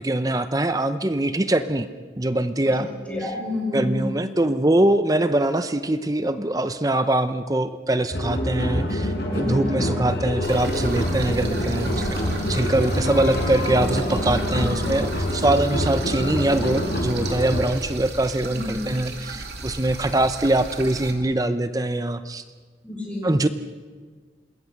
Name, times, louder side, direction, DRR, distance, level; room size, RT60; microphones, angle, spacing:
voice 1, 0.0-1.9 2.2-2.9 3.7-12.2 12.5-22.4 23.2-23.5, right 1 dB, 20° right, 11 dB, 0.7 m, -23 dB
voice 2, 2.6-4.2 9.3-9.8 12.0-12.5 14.5-14.8 18.4-18.9 22.8-23.3, left 2 dB, 5° left, -2 dB, 6.8 m, -30 dB
sound 1, 8.1-17.7, left 1 dB, 60° left, 5.1 m, -26 dB
sound 2, 10.4-21.1, right 3 dB, 65° right, 3.0 m, -36 dB
27.0 x 20.5 x 6.6 m, 1.5 s
head